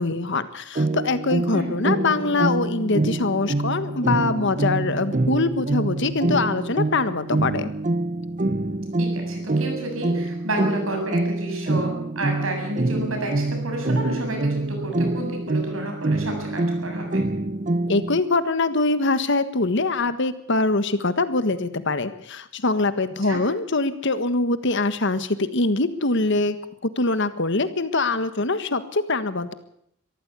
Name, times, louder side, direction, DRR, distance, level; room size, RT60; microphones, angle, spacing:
voice 1, 0.0-7.7 17.9-26.6 26.8-29.5, left 3 dB, 65° left, 12 dB, 1.5 m, -23 dB
sound 1, 0.7-18.2, right 2 dB, 40° right, 1.0 m, -26 dB
voice 2, 9.0-17.2 23.2-23.4, right 1 dB, 80° right, 3 dB, 7.8 m, -30 dB
23.5 x 14.5 x 8.4 m, 0.72 s
head